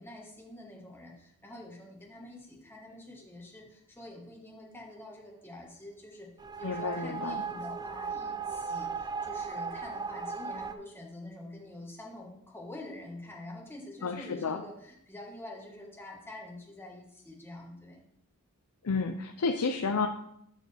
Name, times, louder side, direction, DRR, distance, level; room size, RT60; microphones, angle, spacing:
voice 1, 0.0-6.3 6.6-18.0, left 1 dB, 10° left, -1 dB, 1.6 m, -46 dB
sound 1, 6.4-10.7, right 5 dB, 20° right, 0.4 m, -37 dB
voice 2, 6.6-7.4 14.0-14.6 18.8-20.1, left 4 dB, 80° left, 5 dB, 0.6 m, -31 dB
12.0 x 4.6 x 3.4 m, 0.74 s
head